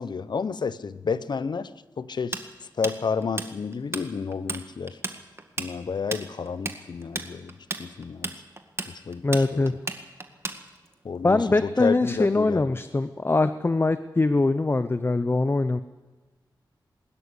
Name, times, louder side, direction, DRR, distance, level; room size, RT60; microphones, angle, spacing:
voice 1, 0.0-1.7 2.0-5.0 5.6-7.5 7.8-8.3 8.9-9.6 11.0-12.8, left 5 dB, 60° left, 15 dB, 0.9 m, -31 dB
Tools, 2.3-4.0 4.3-4.6 4.9-10.9, right 2 dB, 30° right, 1.9 m, -33 dB
voice 2, 9.2-9.7 11.2-15.8, left 2 dB, 30° left, 12 dB, 0.7 m, -23 dB
21.5 x 13.0 x 9.9 m, 1.2 s
cardioid pair, 65°, 8 cm